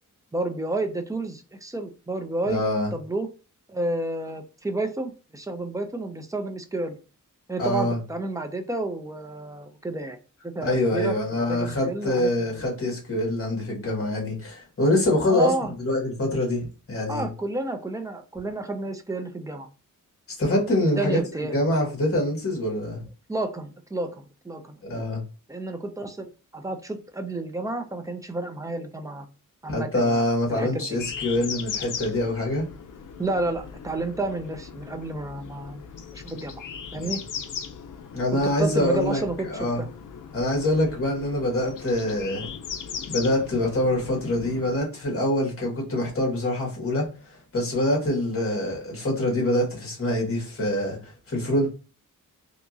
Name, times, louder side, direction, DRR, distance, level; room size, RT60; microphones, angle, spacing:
voice 1, 0.3-2.6 2.9-3.3 3.7-7.0 7.5-10.2 10.4-11.2 11.5-12.6 15.3-15.7 17.1-19.7 21.0-21.6 23.3-25.1 25.5-29.3 29.6-30.2 30.5-31.0 33.2-35.8 36.1-36.5 36.9-37.2 38.3-39.9, right 2 dB, 10° right, 0.4 m, -31 dB
voice 2, 2.5-2.9 7.6-8.0 10.6-15.5 15.8-17.3 20.3-21.2 21.5-23.0 24.8-25.2 29.7-32.7 36.9-37.1 38.1-39.2 39.5-39.8 40.3-42.5 43.1-47.1 47.5-51.7, left 1 dB, 45° left, 1.7 m, -25 dB
sound 1, 30.9-44.8, left 7 dB, 70° left, 0.6 m, -38 dB
3.5 x 2.9 x 2.6 m
wide cardioid pair, 135°, 33 cm